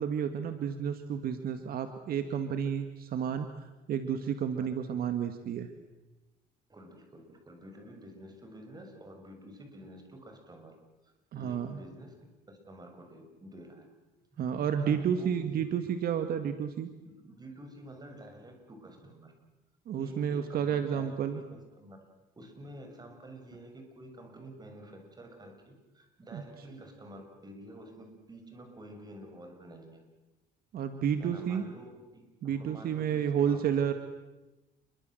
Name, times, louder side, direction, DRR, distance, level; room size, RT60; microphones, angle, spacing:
voice 1, 0.0-5.7 11.3-11.8 14.4-16.9 19.9-21.4 26.3-26.4 30.7-31.6 32.4-33.9, right 8 dB, 60° right, 8 dB, 2.1 m, -31 dB
voice 2, 6.7-10.8 11.0-13.9 14.8-15.7 17.0-19.3 20.0-22.1 22.4-30.0 31.2-33.8, right 1 dB, 25° right, 5 dB, 7.0 m, -49 dB
29.0 x 23.5 x 8.0 m, 1.1 s
cardioid pair, 110°, 17 cm